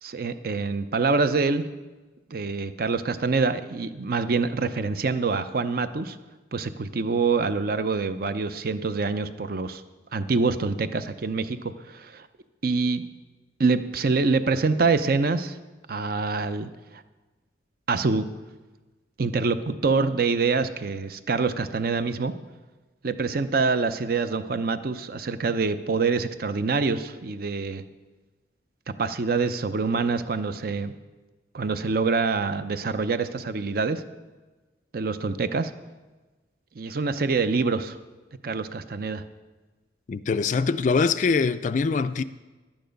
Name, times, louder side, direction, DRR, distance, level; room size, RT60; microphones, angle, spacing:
voice 1, 0.0-1.6 2.3-6.2 6.5-9.8 10.1-12.3 12.6-13.0 13.6-15.6 15.9-16.7 17.9-18.3 19.2-22.3 23.0-27.8 29.0-30.9 31.5-34.0 34.9-35.7 36.8-38.0 38.4-39.2, right 4 dB, 50° right, 0.5 m, -25 dB
voice 2, 40.1-42.2, left 4 dB, 40° left, 0.3 m, -23 dB
11.5 x 9.1 x 5.2 m
head